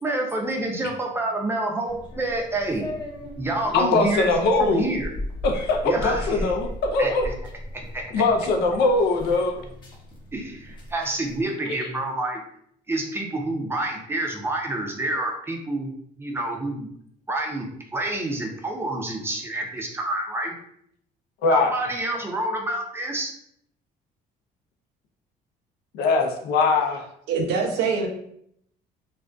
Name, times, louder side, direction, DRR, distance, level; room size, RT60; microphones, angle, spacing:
voice 1, 0.0-2.8 3.4-5.1 5.8-6.6 7.0-7.3 7.7-8.2 10.3-12.4 12.9-15.9 16.2-16.9 17.3-17.7 17.9-20.5 21.5-23.3, right 2 dB, 15° right, 1 dB, 0.5 m, -28 dB
sound 1, 1.8-11.5, equal, 25° left, 0.7 m, -37 dB
voice 2, 3.7-4.9 5.4-7.3 8.1-9.6 21.4-21.7 25.9-27.0, left 3 dB, 80° left, 2 dB, 0.5 m, -21 dB
voice 3, 27.3-28.1, right 5 dB, 85° right, 2 dB, 0.5 m, -23 dB
2.5 x 2.2 x 2.2 m, 0.70 s
cardioid pair, 110°, 17 cm